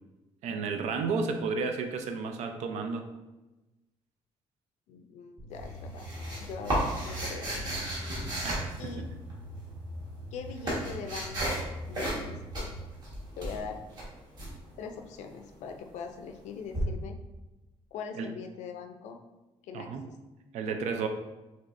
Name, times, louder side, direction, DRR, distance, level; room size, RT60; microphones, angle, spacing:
voice 1, 0.4-3.0 8.4-9.1 18.2-18.3 19.7-20.1 20.5-21.1, right 4 dB, 80° right, 6 dB, 0.5 m, -32 dB
voice 2, 4.9-6.1 6.4-7.7 8.8-9.1 10.3-12.7 13.3-13.8 14.8-17.2 17.9-19.2 19.6-20.1, left 6 dB, 85° left, 5 dB, 0.5 m, -42 dB
sound 1, 5.4-12.8, equal, 10° right, 1.2 m, -43 dB
sound 2, 5.5-9.4 10.1-11.7 11.9-12.3 12.5-14.5 16.7-16.8, right 1 dB, 40° right, 1.4 m, -33 dB
6.0 x 2.9 x 2.5 m, 1.1 s
cardioid pair, 180°, 12 cm